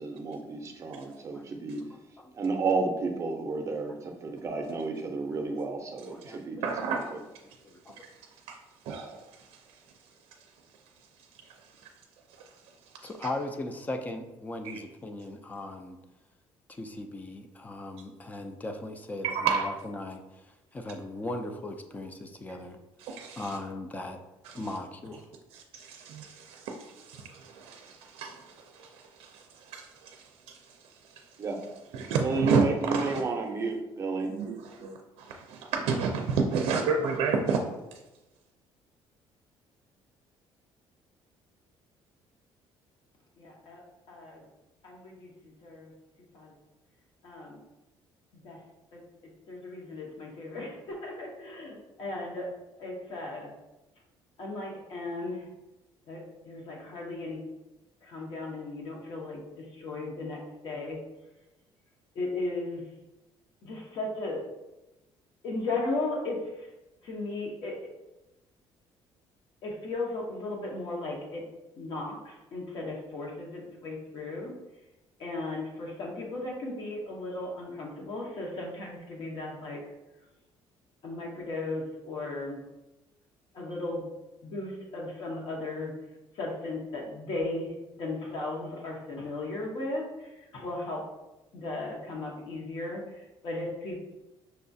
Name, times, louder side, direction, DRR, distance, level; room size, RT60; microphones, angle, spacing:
voice 1, 0.0-1.8 2.3-7.2 31.4-31.6 32.2-34.3, right 3 dB, 30° right, 0.6 m, -31 dB
voice 2, 1.0-1.5 1.9-2.3 6.1-6.7 7.6-8.1 13.0-16.0 16.7-22.8 23.4-24.2 24.5-25.3, left 2 dB, 15° left, 0.3 m, -38 dB
voice 3, 6.6-7.1 8.5-8.6 8.9-9.2 13.0-13.1 19.2-19.7 23.0-23.5 25.5-30.6 31.9-33.2 34.2-37.6, right 5 dB, 90° right, 0.4 m, -31 dB
voice 4, 43.4-43.8 44.1-44.4 44.8-45.9 46.3-46.5 47.2-47.6 48.4-48.6 48.9-49.0 49.5-52.5 52.8-53.5 54.4-55.5 56.1-57.4 58.0-61.0 62.1-62.8 63.6-64.4 65.4-66.7 67.0-67.8 69.6-71.4 71.8-74.5 75.2-79.8 81.0-82.6 83.5-84.0 84.4-85.9 86.3-91.0 91.5-94.0, left 2 dB, 55° left, 0.8 m, -36 dB
5.6 x 2.3 x 2.6 m
cardioid pair, 140°, 10 cm